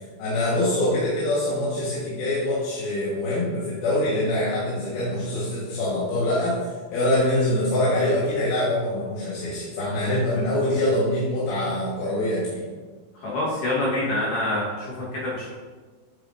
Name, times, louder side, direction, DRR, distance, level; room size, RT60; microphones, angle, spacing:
voice 1, 0.2-12.6, left 1 dB, 85° left, -8 dB, 3.4 m, -24 dB
voice 2, 13.1-15.5, left 1 dB, 65° left, -6 dB, 2.7 m, -26 dB
8.6 x 7.9 x 2.6 m, 1.4 s
omnidirectional pair, 4.2 m